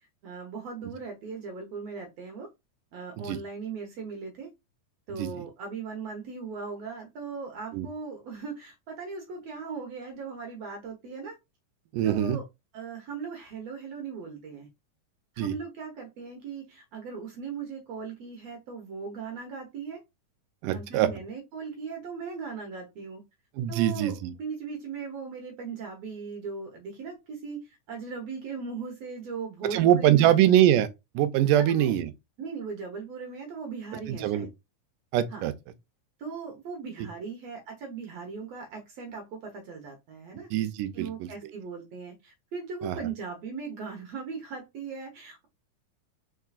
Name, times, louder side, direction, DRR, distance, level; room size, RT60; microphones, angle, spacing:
voice 1, 0.2-2.5 2.9-4.5 5.1-11.4 12.0-12.4 12.7-14.7 15.3-20.0 20.7-23.2 23.7-30.4 31.6-31.9 32.4-34.5 35.3-35.5 36.2-40.5 40.9-45.5, right 5 dB, 65° right, 1.8 m, -38 dB
voice 2, 11.9-12.4 15.4-15.5 20.6-21.1 23.6-24.3 29.7-30.9 31.2-32.1 34.1-34.5 35.1-35.5 40.5-41.3 42.8-43.0, right 12 dB, 80° right, 2.1 m, -23 dB
4.7 x 4.6 x 2.4 m
omnidirectional pair, 3.9 m